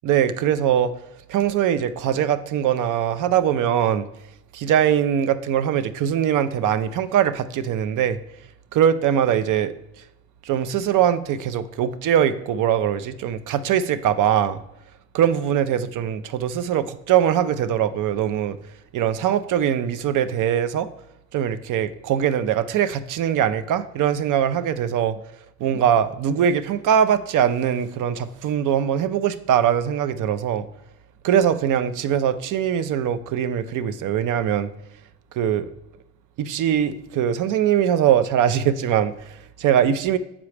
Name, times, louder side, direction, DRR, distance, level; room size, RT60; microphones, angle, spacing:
voice 1, 0.0-0.9 1.3-4.1 4.5-8.2 8.7-9.7 10.4-14.6 15.1-18.6 18.9-20.9 21.3-25.2 25.6-30.7 31.2-34.7 35.3-35.7 36.4-40.2, right 9 dB, 60° right, 0.6 m, -21 dB
7.3 x 4.7 x 3.2 m
supercardioid pair, 65°, 34 cm